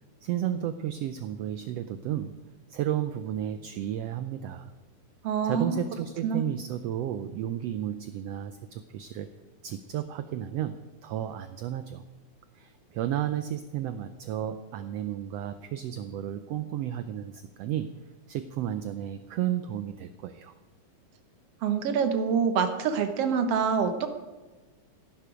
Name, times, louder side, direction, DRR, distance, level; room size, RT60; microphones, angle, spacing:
voice 1, 0.2-4.7 5.4-9.3 9.6-12.0 12.5-20.5, right 11 dB, 80° right, 11 dB, 1.4 m, -33 dB
voice 2, 5.2-5.8 6.2-6.4 21.6-24.1, right 6 dB, 60° right, 7 dB, 1.9 m, -26 dB
16.0 x 11.0 x 5.1 m, 1.2 s
omnidirectional pair, 3.5 m